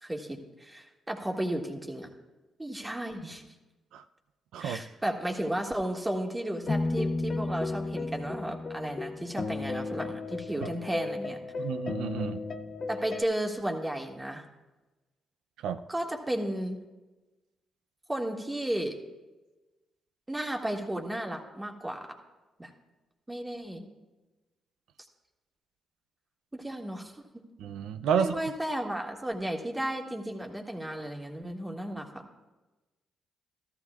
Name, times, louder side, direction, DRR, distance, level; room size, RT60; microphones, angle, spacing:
voice 1, 0.0-2.1 2.6-3.4 4.6-11.4 12.9-14.5 15.9-16.8 18.1-19.0 20.3-22.1 22.6-22.7 23.3-23.9 26.5-27.1 28.1-32.2, right 1 dB, 15° right, 1.7 m, -34 dB
sound 1, 6.6-13.2, left 3 dB, 45° left, 0.5 m, -34 dB
voice 2, 11.6-12.4 15.6-15.8 27.6-28.4, right 7 dB, 80° right, 0.4 m, -30 dB
14.0 x 13.0 x 2.4 m
supercardioid pair, 55°, 0 cm